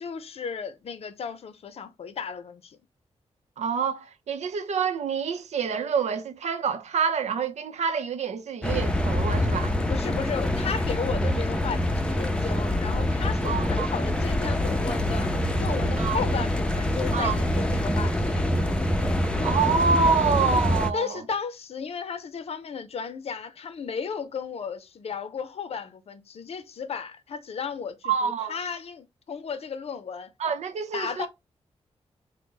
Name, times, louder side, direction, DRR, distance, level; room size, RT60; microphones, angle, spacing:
voice 1, 0.0-2.8 9.9-15.3 15.6-18.4 20.9-30.3 30.9-31.3, left 6 dB, 65° left, 0.5 m, -34 dB
voice 2, 3.6-9.7 13.4-13.9 16.0-16.2 17.1-17.4 19.4-21.2 28.0-28.6 30.4-31.3, right 6 dB, 85° right, 0.6 m, -27 dB
sound 1, 8.6-20.9, left 1 dB, 10° left, 0.5 m, -25 dB
3.9 x 2.1 x 3.6 m
wide cardioid pair, 105°, 11 cm